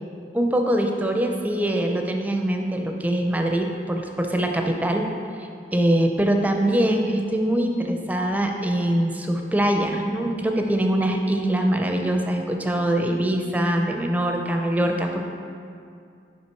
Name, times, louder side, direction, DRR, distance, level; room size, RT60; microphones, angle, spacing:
voice 1, 0.3-5.1 5.7-15.2, right 1 dB, 10° right, 3 dB, 0.4 m, -23 dB
5.8 x 4.8 x 4.4 m, 2.4 s
head